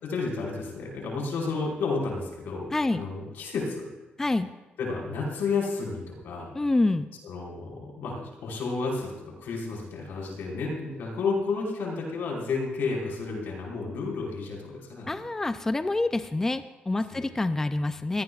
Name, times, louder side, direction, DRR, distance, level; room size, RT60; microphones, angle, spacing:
voice 1, 0.0-3.9 4.8-6.5 7.2-15.2 17.1-17.3, left 4 dB, 90° left, -2 dB, 5.0 m, -31 dB
voice 2, 2.7-3.0 4.2-4.5 6.5-7.1 15.1-18.2, left 2 dB, 15° left, 10 dB, 0.4 m, -27 dB
23.5 x 17.5 x 2.4 m, 1.1 s
cardioid pair, 160°, 4 cm